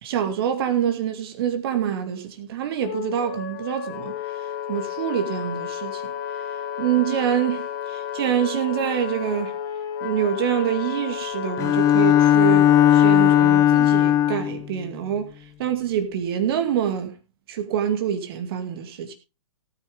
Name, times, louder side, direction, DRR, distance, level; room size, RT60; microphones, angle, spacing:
voice 1, 0.0-4.1 4.7-6.1 6.8-9.5 10.0-15.3 15.6-17.1 17.5-19.1, right 9 dB, 45° right, 2.2 m, -26 dB
Wind instrument woodwind instrument, 2.8-13.7, left 8 dB, 40° left, 1.8 m, -32 dB
Bowed string instrument, 11.6-14.6, left 11 dB, 20° left, 0.8 m, -17 dB
17.5 x 9.5 x 3.5 m
figure-of-eight pair, 115°, 17 cm